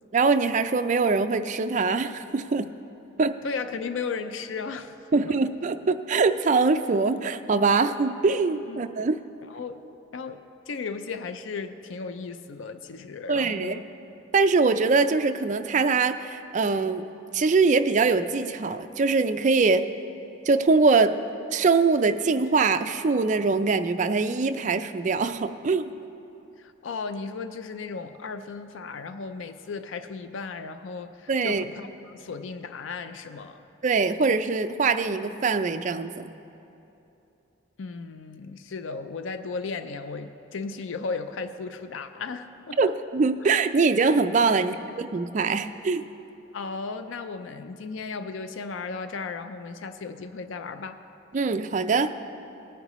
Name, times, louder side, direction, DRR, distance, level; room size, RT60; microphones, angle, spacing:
voice 1, 0.1-2.7 3.2-3.4 5.1-9.2 13.3-13.8 14.3-17.0 17.3-19.8 20.5-21.2 21.5-25.9 31.3-31.6 33.8-36.3 42.8-46.0 51.3-52.1, right 4 dB, 35° right, 9 dB, 0.4 m, -23 dB
voice 2, 3.4-4.9 5.3-5.4 8.7-8.9 9.4-9.8 10.1-13.8 26.6-33.6 37.8-42.9 46.5-51.0, left 4 dB, 70° left, 10 dB, 0.4 m, -35 dB
19.0 x 9.5 x 3.0 m, 2.9 s
head